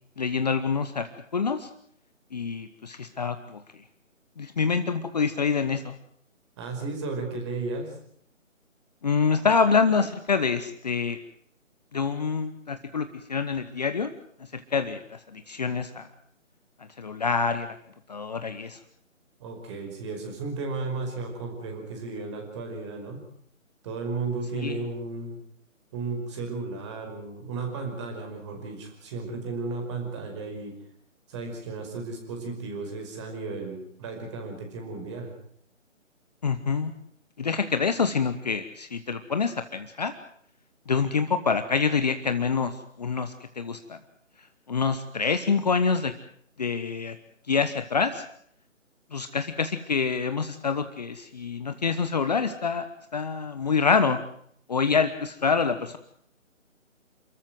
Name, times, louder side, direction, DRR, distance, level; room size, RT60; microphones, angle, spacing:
voice 1, 0.2-1.7 2.3-3.6 4.4-6.0 9.0-11.2 11.9-14.1 14.4-16.1 17.0-17.8 18.1-18.8 24.5-24.8 36.4-36.9 37.4-40.1 40.9-44.0 44.7-46.1 46.6-47.2 47.5-48.2 49.1-52.9 53.1-54.2 54.7-56.0, left 5 dB, 30° left, 10 dB, 1.1 m, -26 dB
voice 2, 6.6-8.0 19.4-23.2 23.8-25.4 25.9-30.7 31.3-35.3, right 3 dB, 20° right, 3 dB, 5.3 m, -34 dB
28.0 x 14.0 x 9.4 m, 0.66 s
figure-of-eight pair, 160°, 40 cm